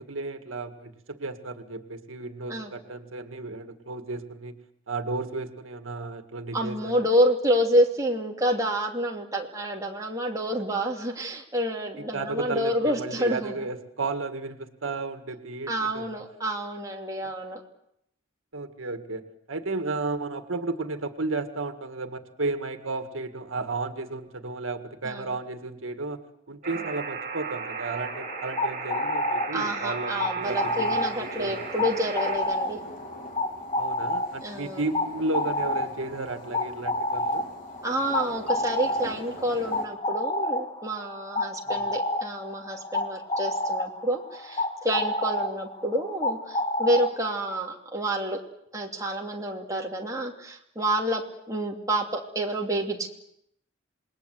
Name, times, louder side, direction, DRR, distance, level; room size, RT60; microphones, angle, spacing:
voice 1, 0.0-4.5 4.9-7.1 12.0-16.1 18.5-19.2 19.5-26.2 26.5-30.9 31.1-31.6 33.8-37.5 41.7-41.9, right 3 dB, 90° right, 8 dB, 1.9 m, -33 dB
voice 2, 6.5-13.7 15.7-17.6 25.0-25.3 29.5-32.8 34.4-34.8 37.8-48.4 48.7-51.2 51.5-53.1, equal, 15° right, 0 dB, 2.7 m, -28 dB
Alarm, 26.6-32.4, right 5 dB, 40° right, 5.8 m, -35 dB
sound 1, 28.1-47.6, left 1 dB, 25° left, 1.6 m, -30 dB
sound 2, 30.4-39.9, equal, 45° left, 4.3 m, -45 dB
27.5 x 20.5 x 8.0 m, 0.77 s
head